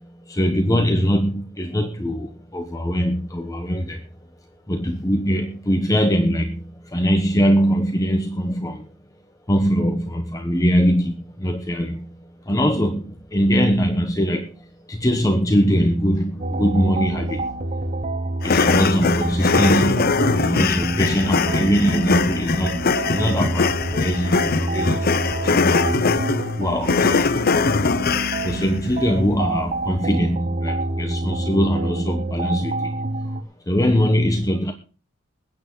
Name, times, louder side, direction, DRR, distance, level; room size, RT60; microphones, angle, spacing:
voice 1, 0.0-4.1 4.7-8.9 9.5-17.6 18.4-27.9 28.4-33.0 33.2-34.7, equal, 15° left, 5 dB, 1.1 m, -22 dB
sound 1, 16.4-33.4, right 2 dB, 35° right, 1.1 m, -27 dB
sound 2, 18.4-28.7, left 4 dB, 50° left, 0.7 m, -21 dB
21.5 x 8.9 x 3.9 m, 0.37 s
head